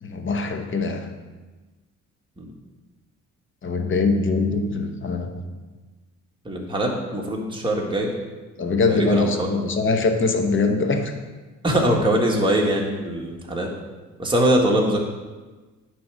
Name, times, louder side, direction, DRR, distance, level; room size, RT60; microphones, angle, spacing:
voice 1, 0.0-1.2 3.6-5.5 8.6-11.1, left 3 dB, 40° left, 5 dB, 1.0 m, -23 dB
voice 2, 6.5-8.1 8.9-9.5 11.6-13.7 14.2-15.0, right 1 dB, 15° right, -2 dB, 1.7 m, -22 dB
9.6 x 3.4 x 6.2 m, 1.3 s
cardioid pair, 90°, 30 cm